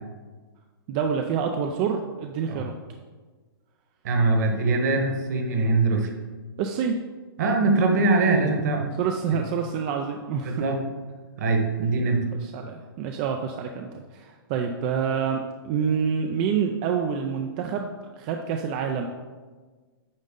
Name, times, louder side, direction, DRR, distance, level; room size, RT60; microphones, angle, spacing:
voice 1, 0.9-2.8 6.6-7.0 9.0-10.6 11.8-11.9 12.4-19.1, right 7 dB, 20° right, 3 dB, 0.3 m, -27 dB
voice 2, 4.0-6.1 7.4-8.9 10.4-10.8 11.4-12.2, right 3 dB, 45° right, 4 dB, 1.2 m, -22 dB
9.1 x 5.2 x 3.8 m, 1.4 s
hypercardioid pair, 160°, 12 cm